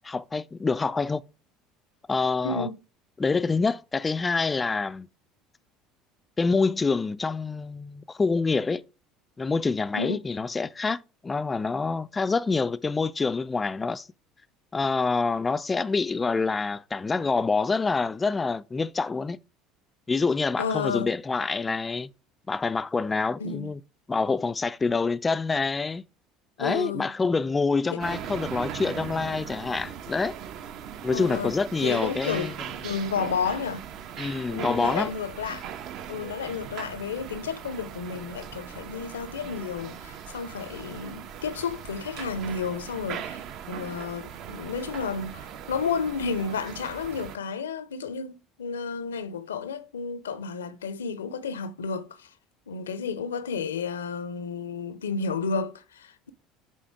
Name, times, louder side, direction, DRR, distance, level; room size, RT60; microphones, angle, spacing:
voice 1, 0.0-1.2 2.1-2.7 3.2-5.1 6.4-8.8 9.4-14.1 14.7-19.4 20.1-22.1 22.5-23.8 24.1-26.0 26.6-30.4 31.0-32.5 34.2-35.1, left 4 dB, 20° left, 0.4 m, -26 dB
voice 2, 2.4-2.8 9.9-10.2 20.6-21.1 23.4-23.7 26.6-27.1 27.9-28.0 31.1-32.6 32.8-33.8 34.5-35.6 36.1-52.3 52.7-56.3, left 5 dB, 80° left, 0.6 m, -32 dB
sound 1, 28.0-47.4, right 9 dB, 55° right, 0.9 m, -39 dB
7.2 x 4.3 x 4.6 m
figure-of-eight pair, 65°, 0 cm